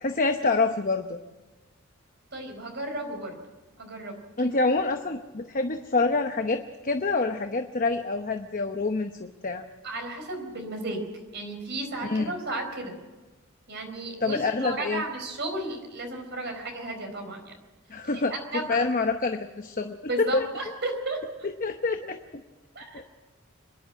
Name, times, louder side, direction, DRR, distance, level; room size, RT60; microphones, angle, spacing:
voice 1, 0.0-1.2 4.4-9.6 12.0-12.3 14.2-15.0 17.9-18.3 18.7-20.5 21.4-22.4 22.9-23.0, left 3 dB, 40° left, 6 dB, 0.9 m, -27 dB
voice 2, 2.3-3.4 3.8-4.1 4.4-4.5 9.8-11.0 11.3-13.0 13.7-17.5 18.1-18.8 20.1-21.5 22.7-23.0, right 2 dB, 50° right, 4 dB, 4.5 m, -34 dB
26.5 x 11.0 x 8.9 m, 1.2 s
head